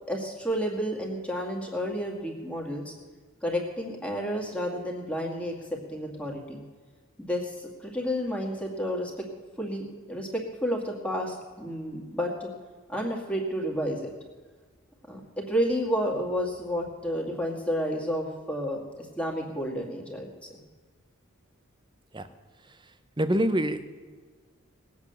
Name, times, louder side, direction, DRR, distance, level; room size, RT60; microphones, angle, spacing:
voice 1, 0.1-2.9 3.4-6.6 7.2-9.3 9.6-12.5 12.9-14.1 15.1-20.3, equal, 5° left, -1 dB, 2.1 m, -31 dB
voice 2, 22.6-23.8, right 1 dB, 20° right, 11 dB, 0.8 m, -27 dB
19.5 x 8.5 x 7.0 m, 1.4 s
head